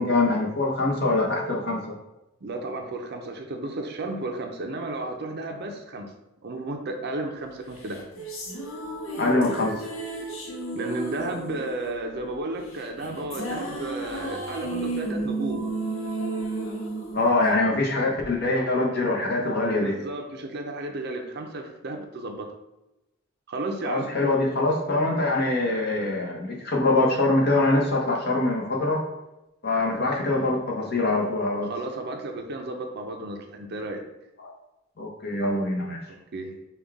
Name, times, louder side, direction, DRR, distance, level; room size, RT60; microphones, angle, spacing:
voice 1, 0.0-1.8 9.2-9.9 17.1-19.9 23.8-29.0 29.6-31.7 34.4-34.5 35.0-36.0, left 2 dB, 50° left, -1 dB, 0.9 m, -24 dB
voice 2, 2.4-6.1 6.4-8.0 10.7-15.7 19.7-22.5 23.5-24.1 31.6-34.1 36.1-36.6, right 2 dB, 55° right, 4 dB, 0.6 m, -33 dB
sound 1, 7.8-18.2, right 2 dB, 75° left, 0.9 m, -33 dB
5.2 x 2.3 x 3.5 m, 0.94 s
head